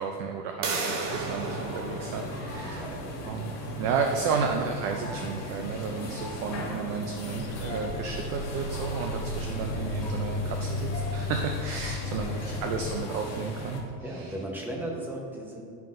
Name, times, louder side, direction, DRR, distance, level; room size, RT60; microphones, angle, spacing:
voice 1, 0.0-2.8 3.2-3.5 3.8-13.8, right 5 dB, 35° right, 3 dB, 0.4 m, -32 dB
sound 1, 0.6-6.2, right 3 dB, 70° right, 1.4 m, -37 dB
sound 2, 1.0-13.8, left 1 dB, 35° left, 1.5 m, -37 dB
voice 2, 2.6-3.1 12.0-12.3 14.0-15.6, right 1 dB, 5° right, -2 dB, 0.9 m, -37 dB
sound 3, 7.3-13.0, left 3 dB, 60° left, 0.7 m, -34 dB
10.5 x 5.7 x 2.6 m, 2.3 s
supercardioid pair, 145°, 47 cm